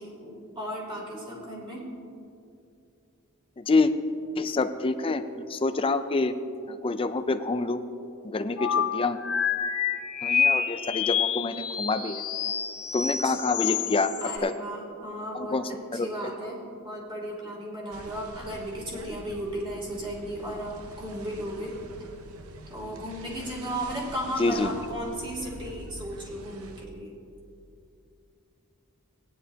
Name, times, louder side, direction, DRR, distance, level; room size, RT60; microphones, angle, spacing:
voice 1, 0.0-1.8 13.2-13.8 14.2-15.6 15.9-21.7 22.7-27.1, equal, 25° right, -4 dB, 3.0 m, -35 dB
voice 2, 3.6-3.9 4.4-6.4 6.7-7.8 8.2-9.2 10.2-12.2 12.9-14.5 15.3-16.3 24.4-24.7, left 3 dB, 25° left, 10 dB, 0.4 m, -27 dB
sound 1, 8.6-14.4, left 7 dB, 80° left, 1.1 m, -28 dB
sound 2, 17.9-26.9, right 1 dB, 75° right, 0.8 m, -45 dB
17.5 x 10.0 x 2.8 m, 2.5 s
head